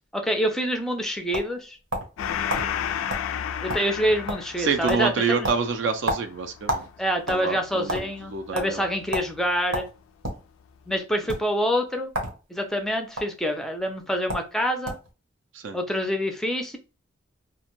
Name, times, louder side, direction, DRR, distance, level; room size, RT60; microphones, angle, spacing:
voice 1, 0.1-1.8 3.6-5.5 7.0-9.9 10.9-12.1 12.5-15.0 15.7-16.8, equal, ahead, 4 dB, 0.4 m, -26 dB
sound 1, 0.8-2.2 2.5-2.7 3.1-3.3 3.5-4.0 4.3-4.6 4.9-5.1 5.4-6.9 7.2-8.0 8.5-8.7 9.1-9.3 9.7-10.4 11.2-11.4 12.1-12.4 12.6-13.2 14.0-14.1 14.3-14.5 14.8-15.1, equal, 85° right, 0.9 m, -29 dB
Gong, 2.2-9.1, left 9 dB, 90° left, 0.3 m, -33 dB
voice 2, 4.6-6.9 7.3-8.8 15.5-15.8, right 5 dB, 65° right, 7 dB, 0.4 m, -27 dB
2.4 x 2.1 x 2.9 m, 0.33 s
head